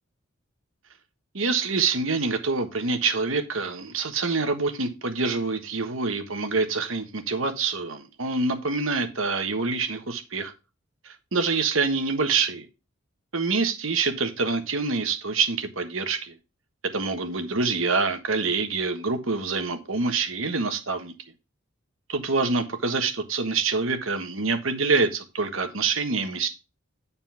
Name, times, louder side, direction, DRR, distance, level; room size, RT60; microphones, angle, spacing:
voice 1, 1.3-10.5 11.0-12.7 13.3-16.3 16.9-21.1 22.1-26.5, right 4 dB, 75° right, 1.3 m, -26 dB
9.5 x 4.2 x 5.7 m
head